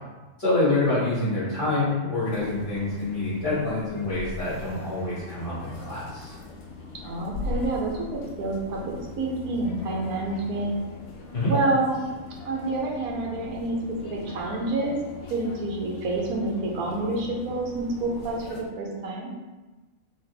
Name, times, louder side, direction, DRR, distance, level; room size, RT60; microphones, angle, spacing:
voice 1, 0.4-6.3 11.3-11.5, left 2 dB, 40° left, -10 dB, 1.8 m, -26 dB
sound 1, 2.2-18.7, left 3 dB, 65° left, 0.9 m, -40 dB
voice 2, 7.0-10.7 11.5-12.0 12.4-15.0 15.3-19.3, right 2 dB, 90° right, -1 dB, 1.3 m, -28 dB
4.1 x 3.5 x 3.3 m, 1.2 s
omnidirectional pair, 1.5 m